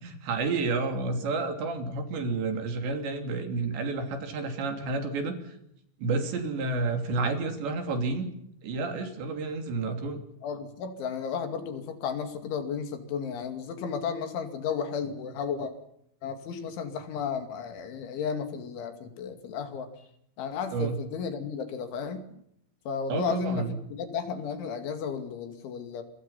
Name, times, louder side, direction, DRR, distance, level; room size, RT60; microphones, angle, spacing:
voice 1, 0.0-5.6 6.0-8.3 8.6-10.2 20.7-21.0 23.1-23.7, right 3 dB, 65° right, 6 dB, 5.2 m, -30 dB
voice 2, 10.4-15.7 16.2-20.1 20.4-22.3 22.9-23.7 23.9-26.0, left 6 dB, 75° left, 8 dB, 4.8 m, -33 dB
28.0 x 24.0 x 5.7 m, 0.75 s
omnidirectional pair, 5.6 m